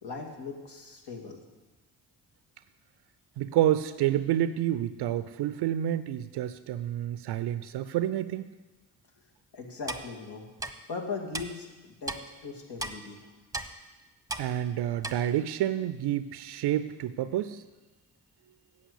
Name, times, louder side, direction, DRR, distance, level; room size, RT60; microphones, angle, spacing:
voice 1, 0.0-1.4 9.5-10.5 10.9-12.1 12.4-13.2, left 4 dB, 60° left, 1 dB, 2.3 m, -39 dB
voice 2, 3.4-8.5 14.4-17.6, right 12 dB, 60° right, 13 dB, 0.6 m, -29 dB
Clock, 9.9-10.0 10.6-10.7 11.3-11.5 12.1-12.2 12.8-12.9 13.5-13.7 14.3-14.5 15.0-15.1, right 2 dB, 10° right, 1.0 m, -34 dB
8.5 x 7.7 x 8.3 m, 1.2 s
hypercardioid pair, 40°, 45 cm